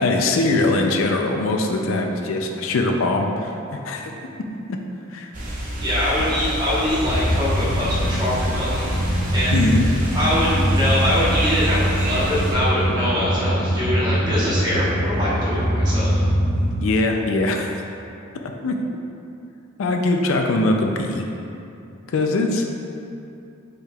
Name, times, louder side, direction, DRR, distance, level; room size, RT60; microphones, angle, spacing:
voice 1, 0.0-3.5 3.8-4.1 4.5-4.8 5.1-5.3 9.5-9.9 16.8-17.7 18.4-18.8 19.8-21.2 22.1-22.6, left 2 dB, 80° left, 3 dB, 0.4 m, -21 dB
sound 1, 5.3-12.5, equal, 40° right, 0.7 m, -27 dB
voice 2, 5.8-9.6 10.1-16.2, left 1 dB, 20° right, -10 dB, 1.2 m, -23 dB
sound 2, 7.0-16.8, equal, 60° left, 1.2 m, -23 dB
5.0 x 4.5 x 2.3 m, 2.7 s
head